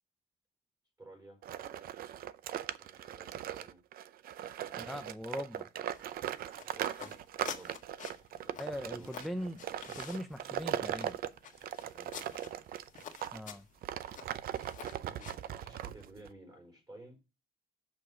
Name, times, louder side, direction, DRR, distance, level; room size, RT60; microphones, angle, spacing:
voice 1, 1.0-1.4 2.8-3.8 4.6-4.9 6.7-7.7 8.4-9.5 11.9-12.6 15.0-17.2, right 2 dB, 20° right, 5.0 m, -55 dB
sound 1, 1.4-13.4 13.8-16.3, right 11 dB, 60° right, 0.6 m, -39 dB
voice 2, 4.8-5.7 8.6-9.6 9.9-11.2 13.3-13.6, equal, ahead, 0.5 m, -40 dB
sound 2, 5.9-15.6, left 8 dB, 50° left, 1.6 m, -49 dB
6.8 x 6.2 x 5.6 m
cardioid pair, 110°, 17 cm